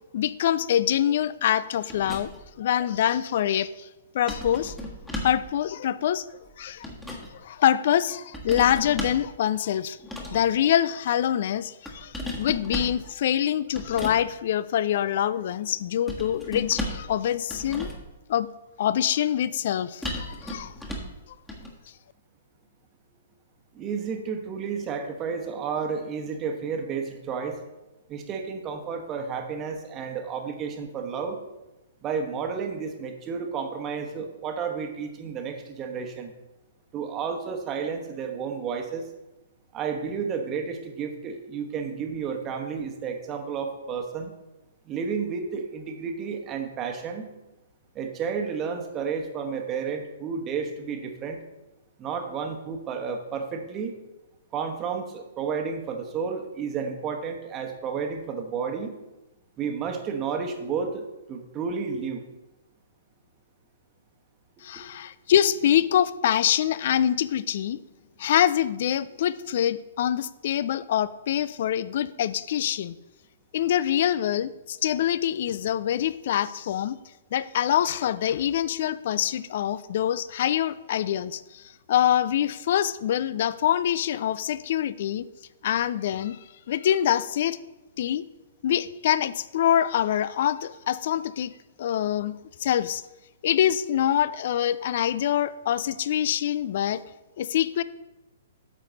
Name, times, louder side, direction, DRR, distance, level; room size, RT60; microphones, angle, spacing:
voice 1, 0.1-2.3 2.6-3.9 4.1-4.8 5.2-6.2 6.6-6.9 7.3-10.0 10.3-17.9 18.3-18.5 18.8-20.7 64.6-67.8 68.2-72.9 73.5-77.0 77.3-85.3 85.6-86.4 86.7-87.6 88.0-88.3 88.6-91.5 91.8-92.3 92.6-93.0 93.4-97.0 97.4-97.8, left 10 dB, 50° left, 17 dB, 0.4 m, -25 dB
sound 1, 1.9-2.5 4.3-5.5 6.5-7.3 8.3-9.3 10.0-10.5 11.9-13.0 13.7-14.2 16.1-17.1 17.5-18.1 20.0-21.2 21.5-21.7, left 1 dB, 5° left, 1.5 m, -35 dB
voice 2, 23.7-27.6 28.1-31.4 32.0-36.3 36.9-39.0 39.7-44.3 44.9-47.3 47.9-51.4 52.0-53.9 54.5-58.9 59.6-62.2, right 6 dB, 25° right, 4 dB, 1.2 m, -31 dB
9.0 x 6.7 x 4.0 m, 1.0 s
figure-of-eight pair, 115°, 0 cm